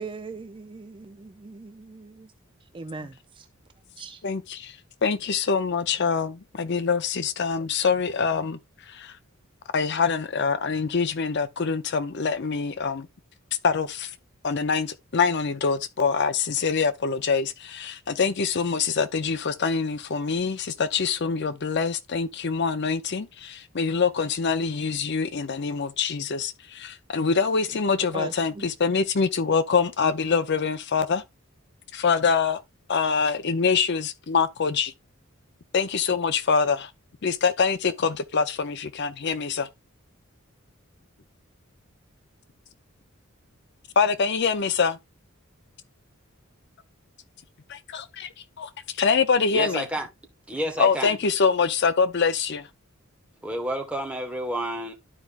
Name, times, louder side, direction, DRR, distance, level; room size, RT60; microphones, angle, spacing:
voice 1, 0.0-2.3 2.7-3.5 4.0-4.2 28.1-28.6, right 4 dB, 25° right, 0.4 m, -39 dB
voice 2, 4.2-4.8 5.0-8.6 8.9-9.2 9.7-13.1 13.6-14.1 14.4-31.2 31.9-32.6 32.9-34.9 35.7-36.9 37.2-39.7 44.0-45.0 47.7-48.3 48.6-49.8 50.8-52.7, left 5 dB, 55° left, 0.6 m, -25 dB
voice 3, 49.5-50.1 50.5-51.2 53.4-54.9, right 1 dB, 5° right, 1.5 m, -30 dB
12.0 x 4.7 x 2.4 m
head